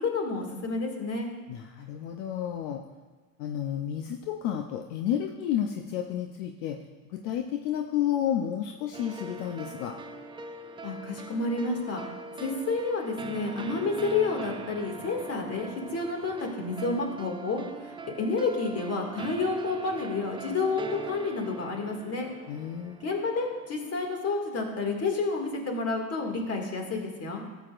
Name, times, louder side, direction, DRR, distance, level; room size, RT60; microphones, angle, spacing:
voice 1, 0.0-1.3 10.8-12.0 12.4-22.3 23.0-27.4, left 3 dB, 35° left, 1 dB, 2.3 m, -30 dB
voice 2, 1.5-2.8 3.4-6.8 7.1-9.9 22.5-23.0, left 10 dB, 70° left, 4 dB, 0.8 m, -31 dB
sound 1, 8.9-24.3, right 3 dB, 15° right, 0.3 m, -42 dB
13.0 x 8.1 x 2.5 m, 1.3 s
supercardioid pair, 100°, 43 cm